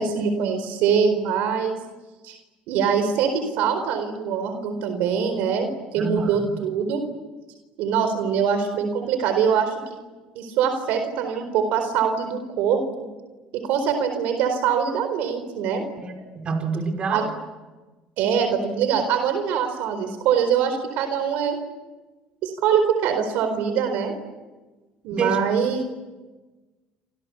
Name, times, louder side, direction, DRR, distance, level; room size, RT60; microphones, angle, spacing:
voice 1, 0.0-1.8 2.2-2.4 2.7-7.0 7.8-10.0 10.3-12.8 13.7-15.8 17.1-17.2 18.2-21.6 22.4-24.1 25.0-25.8, right 7 dB, 75° right, 8 dB, 4.2 m, -23 dB
voice 2, 6.0-6.6 16.0-17.3 25.1-25.4, right 4 dB, 40° right, 4 dB, 5.7 m, -28 dB
29.0 x 28.0 x 7.0 m, 1.2 s
cardioid pair, 125°, 3 cm